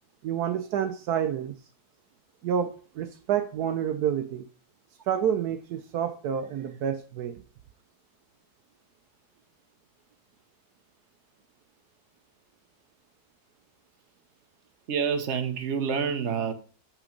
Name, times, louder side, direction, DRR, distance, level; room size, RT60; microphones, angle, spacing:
voice 1, 0.2-1.6 2.4-4.5 5.1-7.4, right 9 dB, 75° right, 1.1 m, -29 dB
voice 2, 14.9-16.5, right 6 dB, 50° right, 1.2 m, -27 dB
7.6 x 5.9 x 5.0 m
omnidirectional pair, 1.8 m